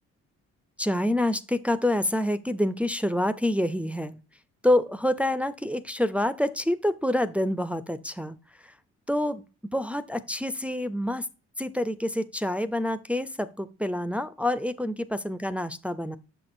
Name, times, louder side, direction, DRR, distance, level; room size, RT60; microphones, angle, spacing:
voice 1, 0.8-4.2 4.6-8.4 8.6-8.7 9.1-9.4 9.7-11.3 11.6-16.2, left 1 dB, 5° right, 0.4 m, -27 dB
6.8 x 6.0 x 2.6 m
cardioid pair, 90°, 30 cm